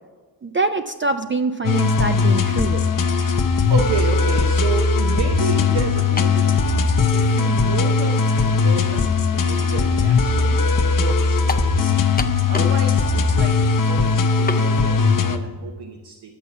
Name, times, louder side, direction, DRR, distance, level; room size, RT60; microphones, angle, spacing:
voice 1, 0.4-2.8, right 3 dB, 30° right, 7 dB, 0.4 m, -24 dB
sound 1, 1.6-15.4, left 4 dB, 50° left, 0.8 m, -19 dB
voice 2, 3.7-12.0 12.5-16.4, right 5 dB, 85° right, 3 dB, 0.9 m, -30 dB
sound 2, 6.2-6.5 7.3-7.4 11.5-11.7 12.2-12.8 13.1-13.2 14.5-14.7, left 5 dB, 25° left, 0.5 m, -28 dB
10.0 x 7.1 x 5.9 m, 1.4 s
wide cardioid pair, 100°, 40 cm